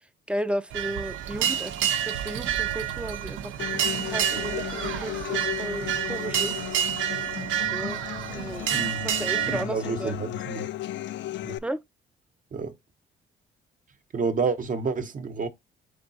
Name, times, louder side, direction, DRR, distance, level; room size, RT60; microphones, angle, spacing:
voice 1, 0.3-3.5 4.1-6.6 7.7-8.0 8.3-8.7 9.2-10.1 11.6-11.8, right 1 dB, 5° right, 0.5 m, -34 dB
sound 1, 0.7-9.6, right 9 dB, 80° right, 0.6 m, -29 dB
Human voice / Acoustic guitar, 3.6-11.6, left 14 dB, 65° left, 0.4 m, -35 dB
voice 2, 8.7-9.1 9.5-10.7 11.4-11.6 12.5-12.7 14.1-15.5, right 4 dB, 40° right, 0.8 m, -29 dB
3.7 x 3.5 x 4.0 m
cardioid pair, 90°, 20 cm